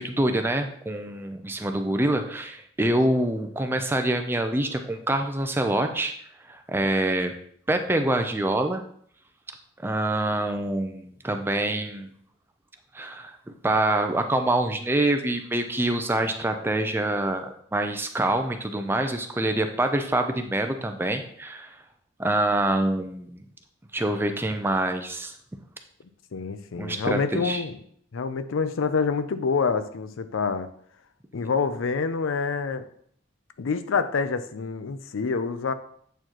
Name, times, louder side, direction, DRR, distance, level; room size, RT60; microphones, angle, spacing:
voice 1, 0.0-6.1 6.5-7.3 7.7-8.8 9.8-12.1 12.9-13.3 13.6-21.8 22.2-23.4 23.9-25.3 26.8-27.6, right 1 dB, 10° right, 6 dB, 0.4 m, -25 dB
voice 2, 26.3-27.8 28.1-30.7 31.3-32.9 33.6-35.7, left 5 dB, 85° left, 11 dB, 0.5 m, -27 dB
7.9 x 4.5 x 2.9 m, 0.63 s
head